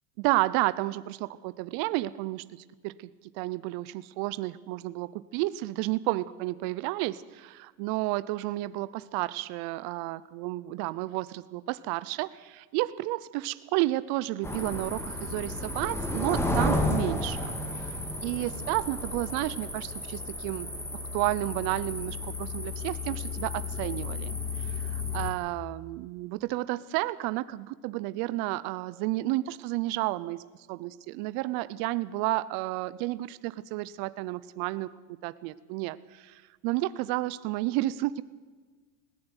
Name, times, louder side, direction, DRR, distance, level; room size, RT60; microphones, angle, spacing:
voice 1, 0.2-18.0 18.2-20.7 21.1-30.4 30.7-34.9 35.2-38.2, right 18 dB, 55° right, 16 dB, 0.8 m, -31 dB
sound 1, 14.4-25.3, left 2 dB, 5° left, 3.1 m, -32 dB
20.5 x 15.5 x 8.1 m, 1.4 s
supercardioid pair, 115°, 44 cm